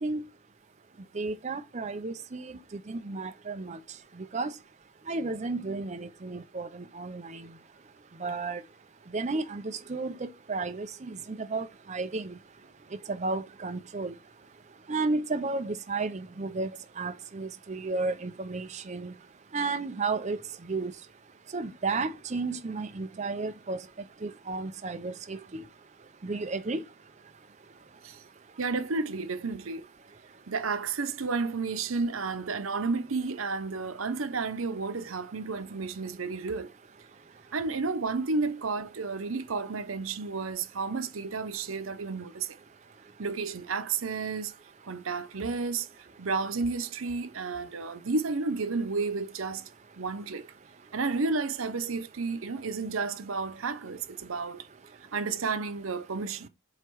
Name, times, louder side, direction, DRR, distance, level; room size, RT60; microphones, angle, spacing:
voice 1, 1.1-3.8 4.3-4.5 5.1-7.5 8.2-8.6 9.1-12.4 13.1-14.1 14.9-16.7 17.0-19.1 19.5-20.4 20.7-20.9 21.5-23.8 24.2-25.6 26.2-26.8, right 3 dB, 35° right, 0.6 m, -33 dB
voice 2, 28.6-29.8 30.5-36.7 37.5-42.5 43.2-44.5 44.9-45.9 46.2-49.7 50.0-50.4 50.9-54.6 55.1-56.5, right 4 dB, 85° right, 0.8 m, -31 dB
8.0 x 3.0 x 4.6 m
head